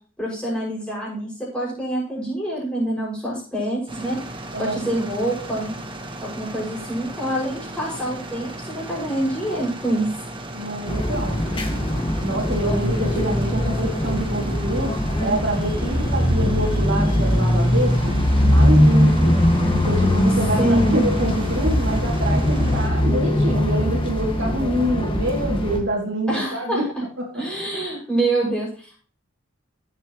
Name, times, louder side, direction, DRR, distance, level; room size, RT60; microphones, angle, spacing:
voice 1, 0.2-4.2 4.6-5.8 6.2-10.1 20.6-21.0 26.3-26.8 27.3-29.0, right 1 dB, 5° left, -6 dB, 6.6 m, -26 dB
sound 1, 3.9-22.9, right 1 dB, 25° right, 1.4 m, -36 dB
voice 2, 4.5-4.9 10.5-11.4 12.2-14.9 15.2-18.1 18.4-19.4 19.7-26.9 27.2-27.3 27.7-28.0, right 1 dB, 55° right, -1 dB, 3.0 m, -26 dB
sound 2, 10.9-25.8, left 1 dB, 25° left, 2.0 m, -20 dB
16.5 x 7.9 x 3.2 m, 0.41 s
head